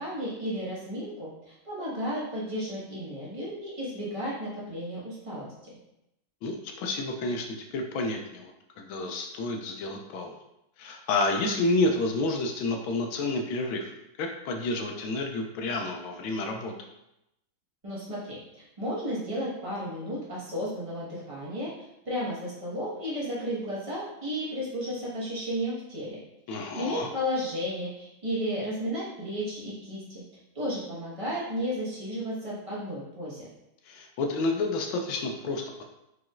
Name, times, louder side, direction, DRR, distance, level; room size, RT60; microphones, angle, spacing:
voice 1, 0.0-5.7 17.8-21.7 22.0-26.2 26.5-30.2 30.5-33.4, equal, 20° right, -7 dB, 1.0 m, -33 dB
voice 2, 6.4-10.3 10.8-13.9 14.2-16.7 26.5-27.1 33.9-35.8, left 2 dB, 75° left, 3 dB, 1.3 m, -30 dB
4.7 x 3.9 x 2.5 m, 0.85 s
omnidirectional pair, 2.3 m